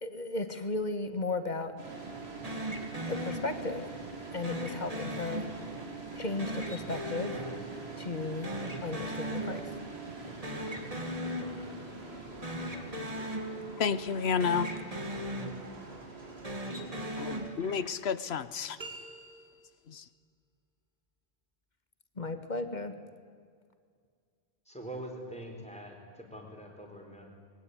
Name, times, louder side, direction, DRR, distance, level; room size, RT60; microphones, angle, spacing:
voice 1, 0.0-1.7 3.1-3.9 4.3-5.5 6.1-7.4 8.0-8.6 8.8-9.7 22.2-23.0, left 3 dB, 45° left, 9 dB, 1.7 m, -35 dB
sound 1, 1.8-17.5, right 3 dB, 85° right, 3.7 m, -44 dB
sound 2, 2.4-4.0 4.4-6.0 6.4-8.2 8.4-10.0 10.2-12.0 12.4-14.1 14.4-16.0 16.4-18.1, equal, 35° right, 2.3 m, -38 dB
voice 2, 13.8-14.7 17.2-18.8 19.9-20.0, left 6 dB, 85° left, 16 dB, 1.2 m, -31 dB
sound 3, 18.8-19.9, right 2 dB, 50° right, 2.9 m, -46 dB
voice 3, 24.7-27.3, right 1 dB, 5° left, 1 dB, 4.3 m, -44 dB
22.0 x 17.0 x 9.7 m, 2.1 s
omnidirectional pair, 1.1 m